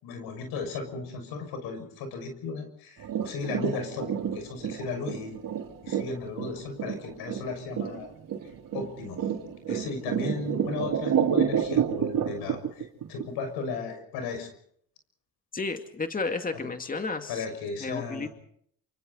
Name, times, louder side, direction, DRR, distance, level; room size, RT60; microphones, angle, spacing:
voice 1, 0.0-5.4 5.8-8.1 8.7-9.2 9.7-14.5 16.5-16.7 17.3-18.3, left 4 dB, 85° left, 7 dB, 6.5 m, -35 dB
sound 1, 3.0-13.3 13.6-13.7, right 9 dB, 60° right, 3.8 m, -29 dB
voice 2, 15.5-17.5 17.8-18.3, left 3 dB, 20° left, 6 dB, 2.4 m, -32 dB
28.0 x 26.0 x 4.2 m, 0.65 s
supercardioid pair, 85°, 37 cm